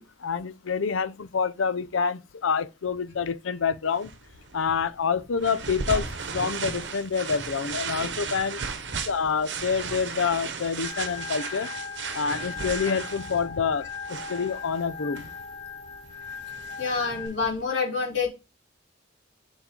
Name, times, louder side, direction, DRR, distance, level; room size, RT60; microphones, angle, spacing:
voice 1, 0.0-4.1 4.5-8.6 9.1-11.7 12.1-15.2, left 6 dB, 90° left, 0.6 m, -27 dB
sound 1, 4.0-17.6, right 5 dB, 65° right, 1.0 m, -36 dB
Organ, 10.8-17.3, left 6 dB, 40° left, 3.6 m, -38 dB
voice 2, 16.8-18.3, left 4 dB, 70° left, 3.4 m, -27 dB
7.2 x 5.3 x 3.7 m
head